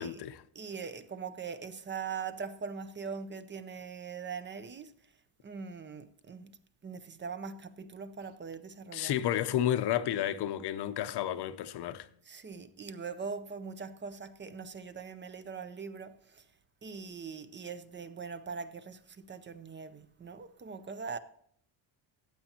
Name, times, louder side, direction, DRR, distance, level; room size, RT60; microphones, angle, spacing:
voice 1, 0.0-0.4 8.9-12.1, left 11 dB, 55° left, 0.7 m, -31 dB
voice 2, 0.5-4.9 5.4-6.5 6.8-9.1 12.3-16.4 16.8-21.2, right 5 dB, 25° right, 0.5 m, -41 dB
14.5 x 8.8 x 2.8 m
cardioid pair, 125°, 50 cm